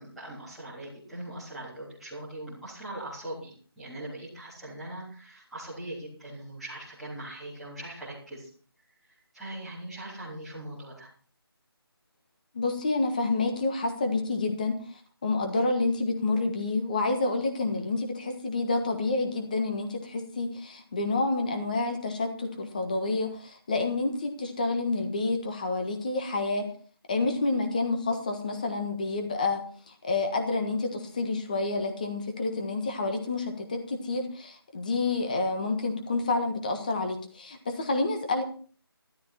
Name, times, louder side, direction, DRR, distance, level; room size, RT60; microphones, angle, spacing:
voice 1, 0.0-8.5 9.3-11.1, right 1 dB, ahead, -14 dB, 3.6 m, -41 dB
voice 2, 12.5-26.6 27.1-38.4, left 3 dB, 20° left, 5 dB, 1.5 m, -29 dB
13.5 x 13.5 x 4.3 m, 0.42 s
figure-of-eight pair, 175°, 13 cm